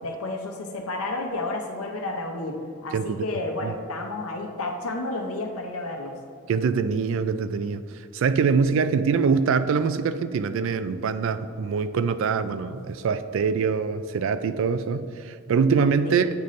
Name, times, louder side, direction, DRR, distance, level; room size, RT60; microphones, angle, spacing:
voice 1, 0.0-6.1 16.0-16.3, left 2 dB, 85° left, 2 dB, 0.7 m, -31 dB
voice 2, 2.9-3.2 3.6-3.7 6.5-7.8 8.1-16.3, right 5 dB, 60° right, 11 dB, 0.3 m, -24 dB
8.6 x 4.0 x 3.1 m, 2.3 s
head